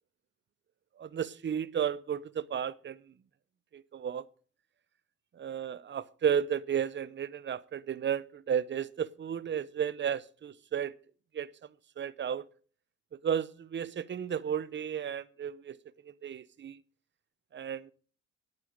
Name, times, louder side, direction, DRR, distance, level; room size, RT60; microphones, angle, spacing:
voice 1, 1.0-3.0 3.7-4.2 5.4-10.9 11.3-11.5 12.0-12.5 13.1-15.8 16.0-16.8 17.5-17.9, right 8 dB, 40° right, 0.7 m, -33 dB
10.5 x 8.5 x 5.4 m
cardioid pair, 90°, 30 cm